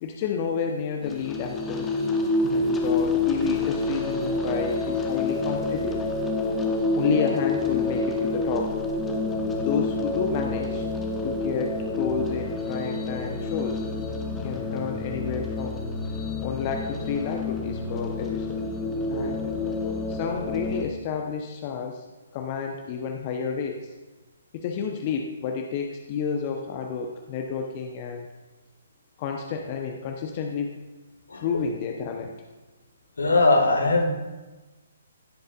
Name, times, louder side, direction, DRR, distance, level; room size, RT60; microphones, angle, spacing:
voice 1, 0.0-2.0 2.4-6.0 6.9-8.7 9.6-10.9 11.2-13.8 14.4-15.8 16.4-18.6 19.1-19.4 20.1-22.0 22.3-23.9 24.5-28.3 29.2-30.7 31.4-32.3, left 6 dB, 35° left, 2 dB, 0.9 m, -30 dB
sound 1, 1.0-20.8, left 3 dB, 10° left, 1.2 m, -28 dB
voice 2, 33.2-34.1, left 2 dB, 70° left, 3 dB, 1.9 m, -20 dB
16.5 x 7.8 x 2.5 m, 1.2 s
figure-of-eight pair, 130°, 0 cm